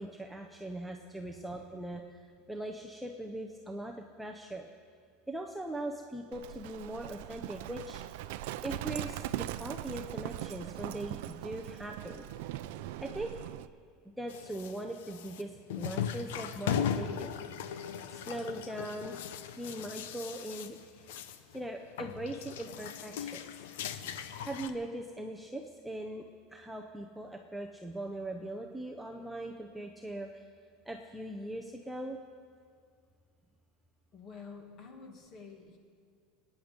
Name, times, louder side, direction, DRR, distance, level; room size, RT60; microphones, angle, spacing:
voice 1, 0.0-2.0 2.5-4.7 5.3-8.0 8.6-12.2 13.0-13.3 14.2-15.5 15.8-17.4 18.1-19.2 19.6-21.0 21.5-23.4 24.4-26.2 26.5-30.4 30.9-32.2, right 1 dB, ahead, 1 dB, 0.6 m, -40 dB
Livestock farm animals working animals, 6.3-13.7, right 14 dB, 65° right, 0.5 m, -40 dB
sound 1, 14.3-21.6 21.8-24.7, left 8 dB, 90° left, 0.9 m, -38 dB
voice 2, 34.1-35.8, left 5 dB, 30° left, 3 dB, 2.0 m, -49 dB
25.5 x 9.6 x 5.2 m, 2.1 s
supercardioid pair, 175°, 0 cm